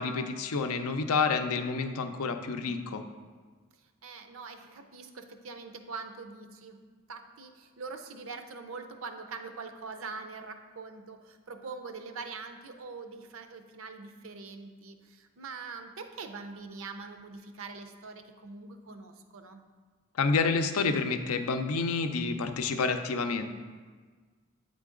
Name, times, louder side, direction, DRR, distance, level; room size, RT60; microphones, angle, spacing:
voice 1, 0.0-3.0 20.2-23.4, left 4 dB, 85° left, 7 dB, 0.5 m, -29 dB
voice 2, 4.0-6.8 7.1-19.6, right 4 dB, 70° right, 7 dB, 0.5 m, -43 dB
8.3 x 3.9 x 3.7 m, 1.5 s
head